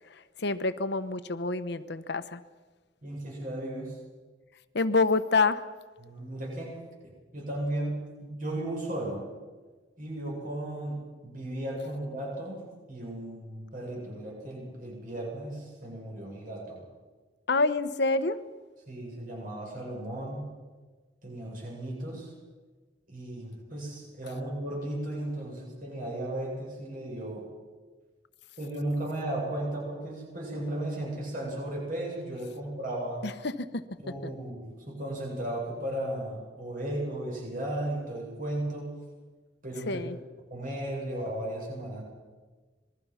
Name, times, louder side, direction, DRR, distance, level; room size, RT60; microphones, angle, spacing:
voice 1, 0.4-2.4 4.7-5.6 17.5-18.4 33.2-33.8 34.2-34.3 39.9-40.2, left 3 dB, 65° left, 11 dB, 1.1 m, -27 dB
voice 2, 3.0-4.0 6.0-9.3 10.0-16.8 18.9-20.5 21.2-22.3 23.1-27.5 28.6-33.3 34.0-39.0 39.6-40.1 40.5-42.0, right 1 dB, 50° right, -2 dB, 8.0 m, -35 dB
26.5 x 21.5 x 5.8 m, 1.3 s
head